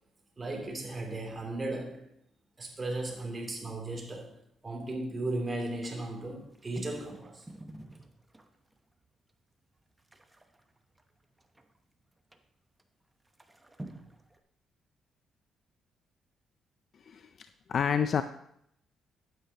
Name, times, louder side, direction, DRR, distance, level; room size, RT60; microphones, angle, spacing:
voice 1, 0.4-2.0 2.6-4.3 4.6-7.4, right 2 dB, 30° right, 0 dB, 2.8 m, -36 dB
sound 1, 6.2-8.8 9.3-9.4 9.6-11.8 12.3-12.4 12.8-12.9 13.2-14.4, right 1 dB, 15° right, 0.9 m, -49 dB
voice 2, 17.7-18.2, left 7 dB, 55° left, 10 dB, 0.4 m, -27 dB
12.0 x 9.2 x 2.9 m, 0.73 s
cardioid pair, 90°, 0 cm